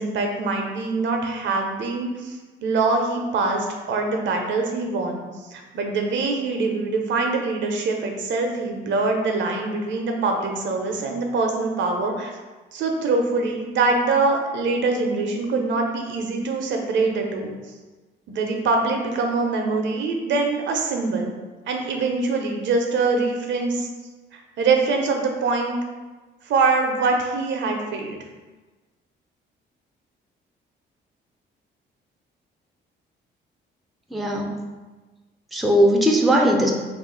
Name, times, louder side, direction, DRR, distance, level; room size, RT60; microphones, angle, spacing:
voice 1, 0.0-2.4 2.6-5.2 5.5-12.3 12.7-17.5 18.3-21.3 21.7-23.9 24.6-25.8 26.5-28.2, right 3 dB, 70° right, 2 dB, 0.5 m, -23 dB
voice 2, 34.1-34.6 35.5-36.7, equal, ahead, 0 dB, 0.4 m, -19 dB
2.5 x 2.4 x 3.7 m, 1.3 s
cardioid pair, 90°, 20 cm